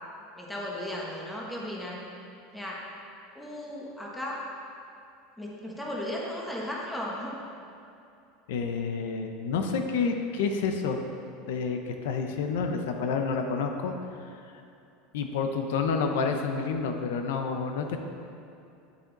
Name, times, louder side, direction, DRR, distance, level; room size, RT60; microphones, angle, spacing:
voice 1, 0.3-2.0 2.5-2.8 3.3-4.4 5.4-7.4, left 1 dB, 5° left, -4 dB, 1.2 m, -35 dB
voice 2, 8.5-11.0 11.5-13.9 14.2-14.3 15.1-18.0, left 5 dB, 80° left, 5 dB, 0.8 m, -29 dB
10.0 x 8.5 x 4.0 m, 2.6 s
supercardioid pair, 170°, 0 cm